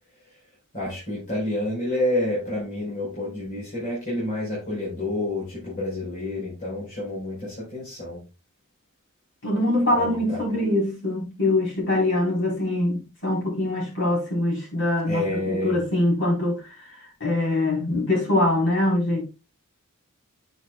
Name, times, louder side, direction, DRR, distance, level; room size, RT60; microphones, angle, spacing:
voice 1, 0.7-8.2 9.9-10.4 15.0-15.8, left 1 dB, 40° left, 4.8 m, -29 dB
voice 2, 9.4-19.2, left 1 dB, 60° left, 4.1 m, -23 dB
8.6 x 6.8 x 2.3 m
head